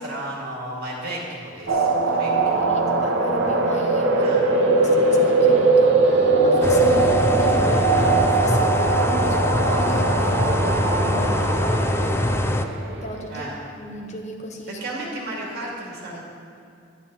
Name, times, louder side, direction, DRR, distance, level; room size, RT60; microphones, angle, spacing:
voice 1, 0.0-2.6 4.2-4.4 13.3-13.5 14.7-16.2, right 1 dB, 55° right, -4 dB, 2.4 m, -33 dB
sound 1, 1.7-12.9, right 3 dB, 75° right, 0.9 m, -20 dB
voice 2, 2.5-12.4 13.0-13.5 13.8-14.9, left 1 dB, 40° left, 3 dB, 0.8 m, -34 dB
sound 2, 6.6-12.7, left 1 dB, 15° left, 0.3 m, -23 dB
10.5 x 9.0 x 4.1 m, 2.5 s
head